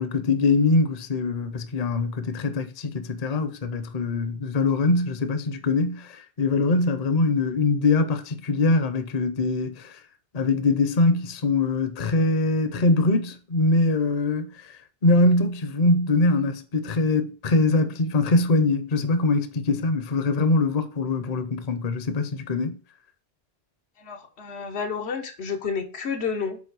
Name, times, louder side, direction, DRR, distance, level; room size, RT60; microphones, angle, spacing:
voice 1, 0.0-10.0 10.3-14.7 15.0-22.8, left 3 dB, 45° left, 0.7 m, -23 dB
voice 2, 24.0-26.6, left 6 dB, 80° left, 1.1 m, -30 dB
5.4 x 4.1 x 4.7 m
omnidirectional pair, 1.1 m